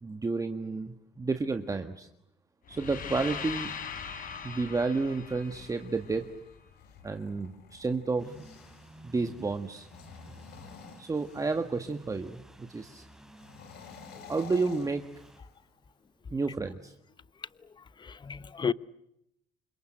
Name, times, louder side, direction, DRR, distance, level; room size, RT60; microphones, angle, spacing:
voice 1, 0.0-2.1 2.7-3.7 4.4-6.3 7.0-8.3 9.0-9.9 11.0-13.1 14.3-15.1 16.3-16.9, right 3 dB, 20° right, 1.7 m, -31 dB
sound 1, 2.7-6.7, left 6 dB, 55° left, 4.6 m, -40 dB
sound 2, 5.2-9.0 9.7-11.8 13.3-15.6, left 6 dB, 75° left, 4.0 m, -50 dB
sound 3, 8.2-15.4, right 1 dB, 5° right, 4.8 m, -54 dB
voice 2, 17.7-18.7, left 6 dB, 25° left, 1.0 m, -33 dB
29.0 x 26.0 x 7.9 m
cardioid pair, 110°, 17 cm